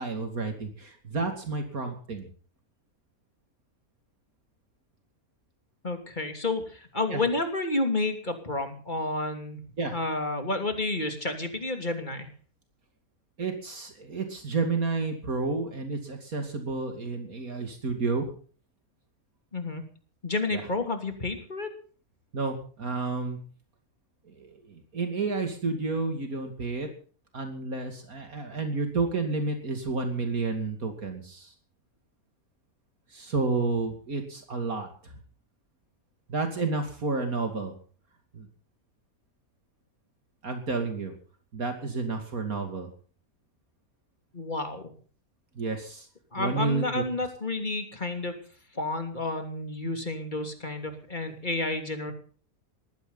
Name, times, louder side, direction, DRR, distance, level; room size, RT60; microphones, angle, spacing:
voice 1, 0.0-2.3 7.1-7.2 9.8-9.9 13.4-18.3 20.5-20.6 22.3-23.4 24.3-26.9 27.3-31.5 33.1-35.1 36.3-37.7 38.3-38.5 40.4-41.1 41.5-42.9 45.6-46.1 46.4-47.0, right 3 dB, 75° right, 5 dB, 3.0 m, -30 dB
voice 2, 5.8-9.6 9.9-12.3 19.5-19.8 20.2-21.7 44.3-44.9 46.3-48.3 48.7-52.1, left 2 dB, 30° left, 6 dB, 3.1 m, -30 dB
20.0 x 15.5 x 4.0 m, 0.42 s
omnidirectional pair, 1.5 m